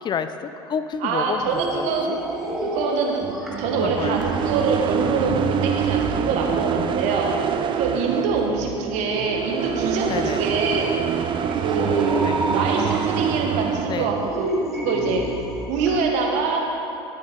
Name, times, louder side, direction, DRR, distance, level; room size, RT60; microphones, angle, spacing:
voice 1, 0.0-1.4 1.7-1.9 3.7-4.2 10.1-10.5 12.2-12.4 13.9-14.2, left 7 dB, 35° left, 10 dB, 0.4 m, -29 dB
voice 2, 1.0-2.2 2.6-3.2 3.6-7.3 7.7-11.0 11.5-15.2 15.7-16.6, right 4 dB, 60° right, 1 dB, 1.4 m, -24 dB
sound 1, 1.4-16.0, right 1 dB, ahead, 1.6 m, -33 dB
sound 2, 3.2-14.3, right 8 dB, 35° right, 0.5 m, -25 dB
12.0 x 6.3 x 3.7 m, 2.8 s
hypercardioid pair, 70°, 14 cm